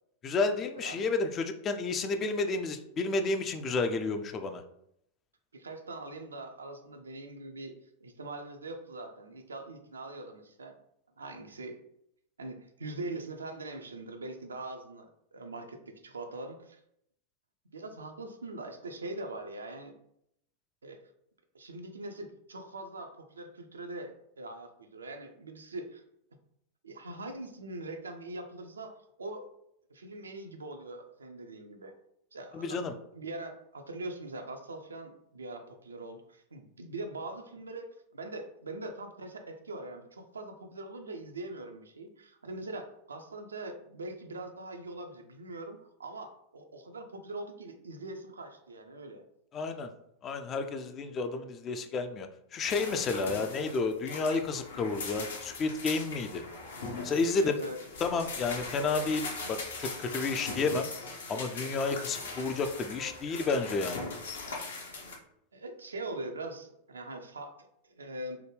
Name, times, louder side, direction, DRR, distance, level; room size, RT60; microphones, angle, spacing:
voice 1, 0.2-4.6 32.5-32.9 49.5-49.9 50.2-52.3 52.5-56.4 57.0-57.6 58.0-60.9 61.3-64.0, left 3 dB, 30° left, 7 dB, 0.3 m, -31 dB
voice 2, 0.8-1.1 5.5-7.8 8.0-10.8 11.2-11.8 12.4-16.8 17.7-19.9 20.8-21.0 21.5-26.0 26.8-29.5 29.9-31.9 32.3-32.9 33.1-49.2 57.4-57.8 65.5-67.5 67.8-68.4, right 2 dB, 75° right, 6 dB, 0.4 m, -42 dB
sound 1, 52.6-65.2, left 3 dB, 65° left, 0.6 m, -40 dB
3.5 x 2.1 x 3.1 m, 0.75 s
figure-of-eight pair, 90°, 0 cm